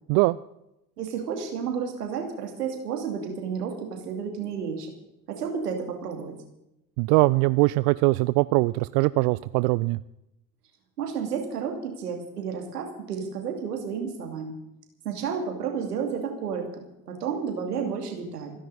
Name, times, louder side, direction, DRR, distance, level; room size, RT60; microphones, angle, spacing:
voice 1, 1.0-4.9 5.3-6.3 11.0-14.5 15.0-16.7 17.1-18.5, right 6 dB, 80° right, 4 dB, 2.7 m, -31 dB
voice 2, 7.0-10.0, right 23 dB, 60° right, 17 dB, 0.5 m, -21 dB
27.5 x 10.5 x 4.1 m, 0.85 s
figure-of-eight pair, 50°, 46 cm